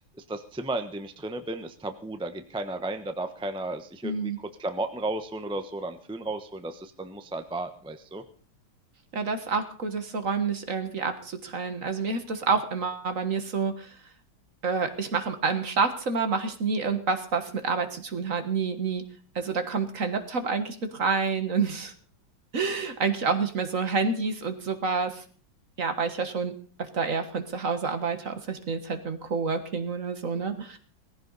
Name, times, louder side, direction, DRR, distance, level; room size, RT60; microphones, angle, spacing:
voice 1, 0.2-8.2, right 2 dB, 5° right, 7 dB, 0.6 m, -34 dB
voice 2, 4.0-4.4 9.1-13.9 14.6-19.0 19.4-21.9 22.5-25.2 25.8-26.5 26.8-30.8, right 5 dB, 45° right, 8 dB, 1.7 m, -28 dB
18.5 x 15.5 x 4.1 m, 0.42 s
omnidirectional pair, 2.1 m